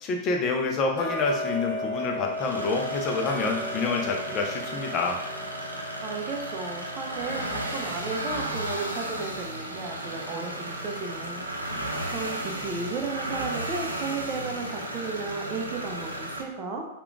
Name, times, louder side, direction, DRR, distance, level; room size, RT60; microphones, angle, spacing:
voice 1, 0.0-5.2, left 4 dB, 30° left, 2 dB, 0.6 m, -27 dB
Tick-tock, 1.0-11.8 12.2-12.3 12.9-13.0 13.4-13.5 14.1-14.2 14.7-14.8 15.3-15.4 15.9-16.0, left 2 dB, 50° left, 1.1 m, -37 dB
sound 1, 2.3-16.4, right 1 dB, 85° right, 0.5 m, -34 dB
voice 2, 6.0-11.4 12.1-16.9, right 4 dB, 25° right, 1 dB, 0.6 m, -34 dB
3.4 x 2.4 x 3.6 m, 0.91 s
figure-of-eight pair, 95°, 0 cm